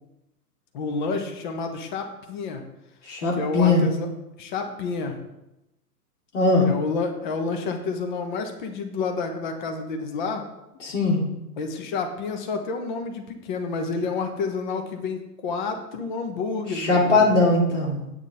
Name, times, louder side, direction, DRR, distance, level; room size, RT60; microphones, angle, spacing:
voice 1, 0.7-2.6 3.4-4.1 4.4-5.2 6.6-10.5 11.6-17.4, left 4 dB, 30° left, 5 dB, 1.4 m, -29 dB
voice 2, 3.0-3.9 6.3-6.7 10.8-11.2 16.7-18.0, left 2 dB, 45° left, -1 dB, 3.0 m, -20 dB
8.8 x 8.7 x 4.4 m, 0.90 s
figure-of-eight pair, 135°, 48 cm